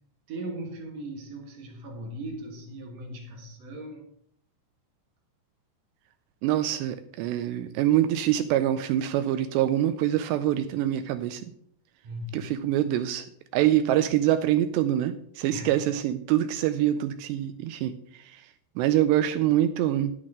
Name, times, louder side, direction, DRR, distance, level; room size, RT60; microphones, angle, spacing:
voice 1, 0.3-4.1 12.0-12.7 15.5-15.9, right 1 dB, 60° right, 2 dB, 1.7 m, -39 dB
voice 2, 6.4-11.4 12.3-13.3 13.5-17.9 18.2-18.4 18.8-20.1, right 12 dB, 85° right, 10 dB, 2.5 m, -25 dB
10.5 x 10.0 x 3.6 m, 0.68 s
omnidirectional pair, 5.2 m